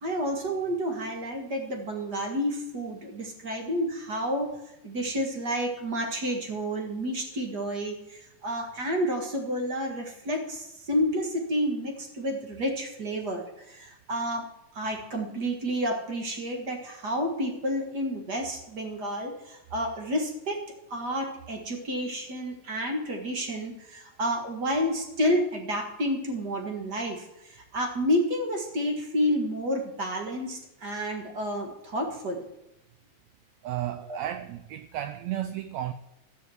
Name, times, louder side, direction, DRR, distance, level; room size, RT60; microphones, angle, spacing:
voice 1, 0.0-4.6 4.8-14.5 14.7-20.6 20.9-32.4 34.1-34.2, equal, 40° right, 1.7 m, -30 dB
voice 2, 33.6-35.9, right 12 dB, 90° right, 1.5 m, -33 dB
14.0 x 6.0 x 7.9 m
omnidirectional pair, 3.8 m